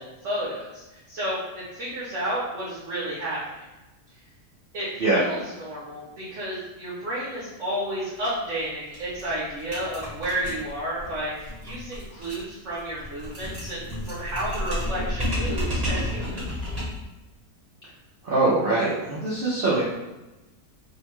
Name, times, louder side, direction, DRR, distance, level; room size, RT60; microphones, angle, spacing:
voice 1, 0.0-3.6 4.7-16.5, right 1 dB, 60° right, -8 dB, 1.0 m, -32 dB
sound 1, 8.2-8.3 8.6-8.7 8.9-17.1, left 1 dB, 30° right, 0.8 m, -31 dB
voice 2, 18.2-19.8, right 2 dB, 80° right, -7 dB, 0.5 m, -22 dB
2.8 x 2.2 x 3.0 m, 1.1 s
omnidirectional pair, 1.7 m